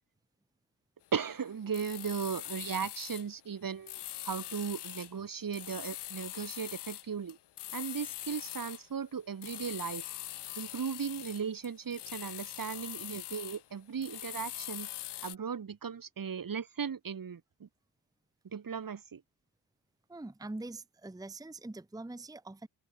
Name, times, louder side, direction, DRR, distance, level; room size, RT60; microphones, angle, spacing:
voice 1, 1.1-7.4 7.7-10.1 10.6-14.9 15.2-17.7 18.5-19.2, right 6 dB, 45° right, 1.6 m, -37 dB
sound 1, 1.7-3.3 3.9-5.1 5.5-8.9 9.4-13.6 14.0-15.3, left 13 dB, 60° left, 0.6 m, -42 dB
voice 2, 20.1-22.7, right 2 dB, 10° right, 1.0 m, -43 dB
cardioid pair, 75°, 47 cm